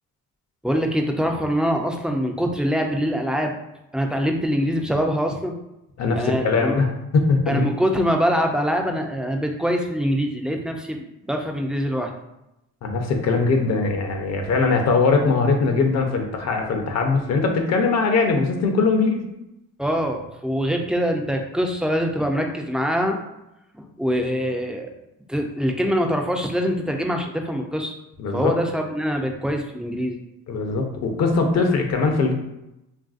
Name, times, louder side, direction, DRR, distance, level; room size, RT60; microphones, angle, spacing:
voice 1, 0.6-3.5 3.9-5.6 6.1-6.8 7.5-12.1 19.8-23.2 23.8-24.9 25.3-27.9 28.3-30.2, equal, 5° right, 2 dB, 0.3 m, -24 dB
voice 2, 6.0-6.9 7.1-7.6 12.8-19.2 28.2-28.5 30.5-32.3, left 4 dB, 60° left, 3 dB, 0.6 m, -21 dB
3.2 x 2.5 x 2.4 m, 0.90 s
cardioid pair, 90°, 30 cm